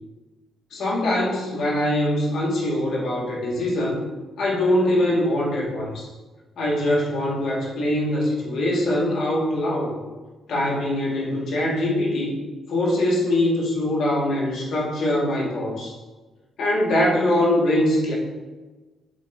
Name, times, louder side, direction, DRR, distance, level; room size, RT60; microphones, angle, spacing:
voice 1, 0.7-4.0 4.4-6.1 6.6-9.9 10.5-12.3 12.7-16.0 16.6-18.1, left 1 dB, 65° left, -3 dB, 2.2 m, -23 dB
8.4 x 7.3 x 2.9 m, 1.3 s
cardioid pair, 115°, 0 cm